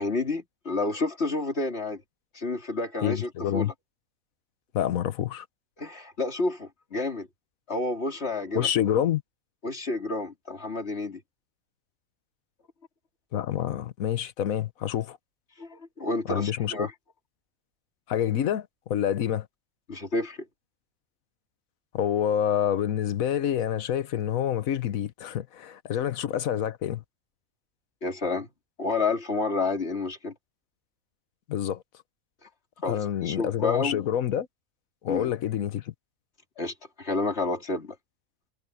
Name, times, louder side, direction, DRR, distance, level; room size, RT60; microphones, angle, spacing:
voice 1, 0.0-2.0 2.3-3.7 5.8-7.3 7.7-8.7 9.6-11.2 15.6-16.9 19.9-20.4 28.0-28.5 28.8-30.3 32.4-32.5 32.8-34.0 35.1-35.3 36.6-38.0, left 3 dB, 50° left, 3.2 m, -30 dB
voice 2, 3.0-3.7 4.7-5.4 8.5-9.2 13.3-15.2 16.3-16.9 18.1-19.5 21.9-27.0 31.5-31.8 32.9-34.5 35.0-35.9, left 10 dB, 85° left, 1.3 m, -27 dB
omnidirectional pair, 1.4 m